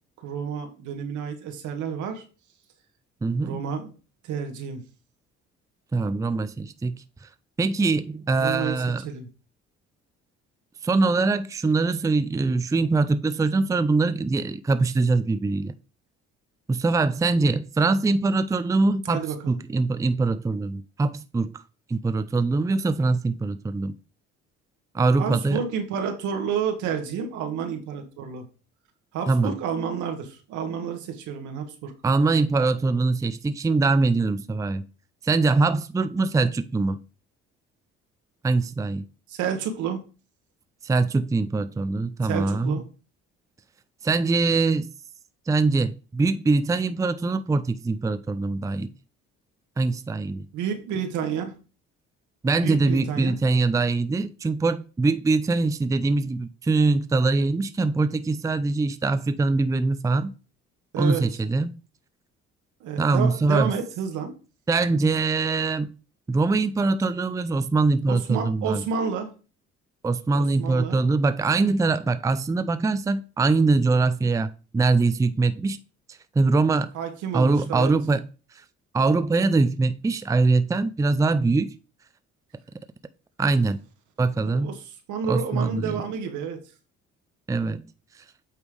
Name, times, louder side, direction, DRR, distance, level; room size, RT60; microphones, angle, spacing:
voice 1, 0.2-2.2 3.4-3.9 4.2-4.8 8.4-9.3 19.1-19.6 25.2-28.4 29.1-31.9 39.3-40.0 42.2-42.8 50.5-51.5 52.6-53.4 60.9-61.3 62.8-64.3 68.1-69.3 70.3-71.0 76.9-77.9 84.4-86.6, right 7 dB, 80° right, 1.5 m, -30 dB
voice 2, 3.2-3.6 5.9-7.0 7.6-9.0 10.8-15.7 16.7-21.5 21.9-23.9 24.9-25.6 29.3-29.5 32.0-34.9 35.2-37.0 38.4-39.0 40.8-42.8 44.0-44.9 45.5-48.9 49.8-50.5 52.4-60.3 61.0-61.8 63.0-63.7 64.7-65.9 66.3-68.8 70.0-75.8 76.4-76.9 77.3-78.2 78.9-81.7 83.4-83.8 84.2-84.7 85.3-85.9 87.5-87.8, right 3 dB, 10° right, 0.4 m, -23 dB
8.3 x 3.4 x 4.8 m
supercardioid pair, 70°, 29 cm